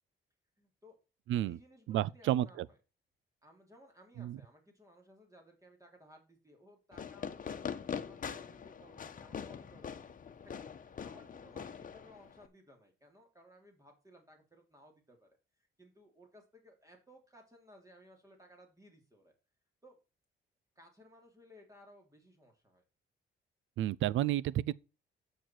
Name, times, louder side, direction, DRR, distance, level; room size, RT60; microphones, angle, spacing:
voice 1, 0.6-1.0 1.4-2.8 3.4-10.0 10.4-15.3 15.6-19.3 19.8-20.0 20.7-22.8, equal, 15° right, 3.1 m, -60 dB
voice 2, 1.9-2.7 4.2-4.4 23.8-24.7, right 13 dB, 75° right, 0.5 m, -31 dB
Fireworks, 6.9-12.5, left 7 dB, 45° left, 1.2 m, -43 dB
9.2 x 6.7 x 4.6 m
cardioid pair, 90°, 20 cm